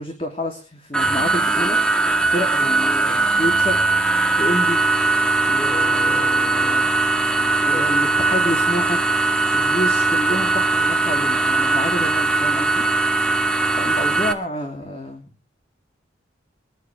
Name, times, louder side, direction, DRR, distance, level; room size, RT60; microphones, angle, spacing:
voice 1, 0.0-1.8 2.2-3.8 4.4-4.8 5.5-6.9 7.4-9.0 9.5-13.0 13.7-15.3, left 1 dB, 30° left, 2 dB, 3.2 m, -28 dB
sound 1, 0.9-14.3, right 3 dB, 5° left, 2.0 m, -19 dB
26.0 x 11.5 x 3.6 m, 0.36 s
head